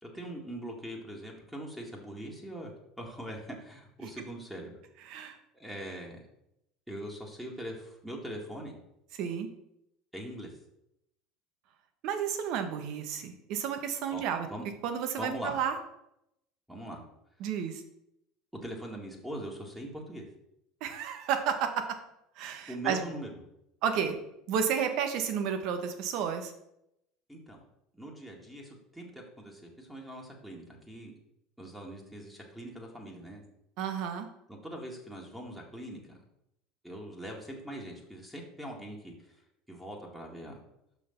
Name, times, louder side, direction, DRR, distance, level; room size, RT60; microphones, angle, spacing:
voice 1, 0.0-2.7 3.0-4.8 5.2-5.3 5.6-6.2 6.9-8.8 10.1-10.5 14.1-14.2 14.5-14.7 15.2-15.6 16.7-17.0 18.5-20.3 22.7-23.3 27.3-27.6 27.9-31.1 31.6-33.4 34.5-36.2 36.8-39.4 39.7-40.6, right 1 dB, 5° right, -1 dB, 2.0 m, -42 dB
voice 2, 5.1-5.4 9.1-9.5 12.0-14.5 14.8-15.8 17.4-17.8 20.8-22.0 22.4-23.0 23.8-24.2 24.5-26.5 33.8-34.3, right 7 dB, 65° right, 7 dB, 1.2 m, -31 dB
5.9 x 5.8 x 5.8 m, 0.82 s
hypercardioid pair, 90°, 0 cm